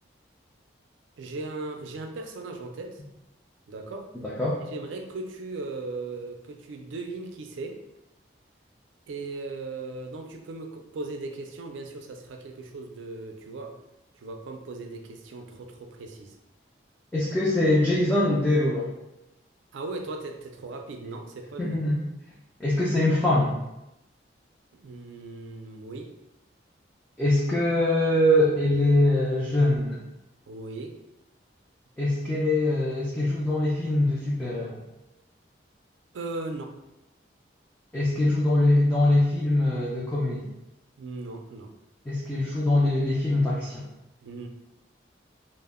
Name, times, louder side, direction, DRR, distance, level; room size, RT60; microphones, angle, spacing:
voice 1, 1.2-3.0 3.7-4.1 4.7-7.8 9.1-13.7 14.2-16.3 19.7-21.8 24.7-26.1 30.5-31.0 36.1-36.7 41.0-41.7 44.2-44.5, right 3 dB, 90° right, 4 dB, 0.4 m, -37 dB
voice 2, 4.2-4.6 17.1-18.9 21.6-22.0 22.6-23.5 27.2-30.0 32.0-34.8 37.9-40.5 42.1-43.9, left 1 dB, 10° left, -7 dB, 0.3 m, -23 dB
2.1 x 2.0 x 3.4 m, 0.90 s
head